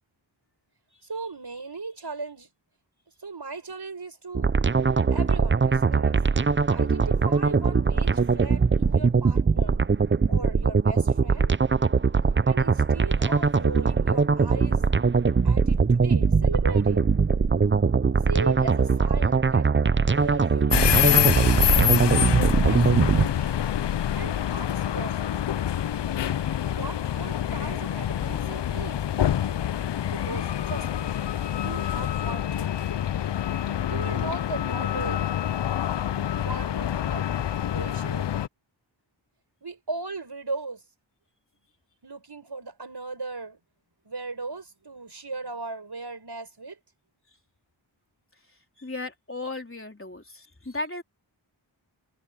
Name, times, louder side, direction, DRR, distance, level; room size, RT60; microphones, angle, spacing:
voice 1, 1.0-2.5 3.2-4.5 5.1-6.2 6.7-9.8 10.3-11.5 12.5-14.8 15.4-17.1 18.3-19.7 20.1-20.8 21.4-22.1 22.6-23.7 24.2-25.4 26.7-29.0 30.1-31.1 31.6-32.7 33.9-35.3 36.4-38.3 39.6-40.8 42.0-43.6 44.1-46.8, right 3 dB, 55° right, 7.0 m, -37 dB
sound 1, 4.3-23.3, right 5 dB, 25° right, 0.6 m, -21 dB
sound 2, 20.7-38.5, left 10 dB, 60° left, 0.6 m, -26 dB
voice 2, 48.8-51.0, left 2 dB, 25° left, 4.0 m, -35 dB
wide cardioid pair, 50°, 48 cm